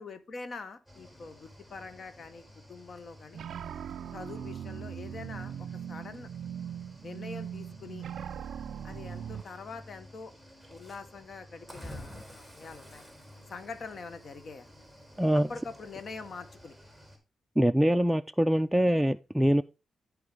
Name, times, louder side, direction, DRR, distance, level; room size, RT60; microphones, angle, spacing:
voice 1, 0.0-2.4 2.7-3.4 4.1-6.3 7.0-8.0 8.8-10.3 10.7-13.1 13.5-14.7 15.3-16.7, left 4 dB, 55° left, 1.1 m, -44 dB
Cricket / Waves surf, 0.9-17.2, left 1 dB, 10° left, 2.9 m, -51 dB
sound 1, 3.3-9.4, right 9 dB, 80° right, 0.3 m, -40 dB
voice 2, 15.2-15.5 17.6-19.6, equal, 5° right, 0.4 m, -24 dB
13.5 x 4.7 x 3.3 m
cardioid pair, 95°, 0 cm